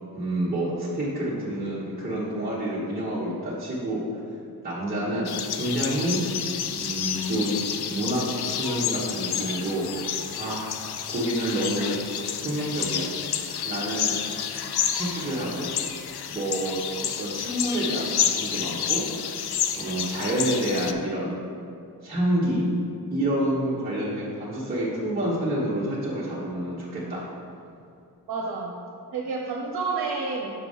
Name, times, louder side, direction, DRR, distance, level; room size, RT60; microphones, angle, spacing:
voice 1, 0.1-4.2 4.6-6.2 6.7-7.6 7.9-10.0 10.3-10.7 11.1-12.0 12.4-13.1 13.6-14.2 14.9-15.7 16.3-19.0 19.8-21.4 22.0-22.6 23.1-27.2, right 1 dB, 25° right, -9 dB, 1.1 m, -28 dB
sound 1, 5.3-20.9, left 9 dB, 75° left, 0.5 m, -30 dB
voice 2, 28.3-28.8 29.1-30.5, right 4 dB, 65° right, -2 dB, 0.9 m, -29 dB
6.3 x 4.7 x 5.5 m, 2.5 s
wide cardioid pair, 160°, 39 cm